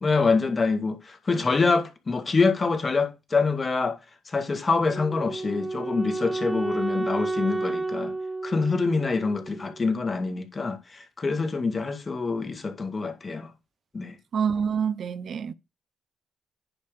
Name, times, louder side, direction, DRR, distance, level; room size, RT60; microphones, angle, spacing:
voice 1, 0.0-4.0 4.3-8.1 8.4-13.5 13.9-14.2, left 4 dB, 35° left, 1.8 m, -25 dB
Wind instrument woodwind instrument, 4.9-10.0, right 2 dB, 20° right, 1.2 m, -31 dB
voice 2, 14.3-15.5, right 7 dB, 60° right, 0.6 m, -27 dB
9.7 x 3.3 x 6.7 m
hypercardioid pair, 50°, 0 cm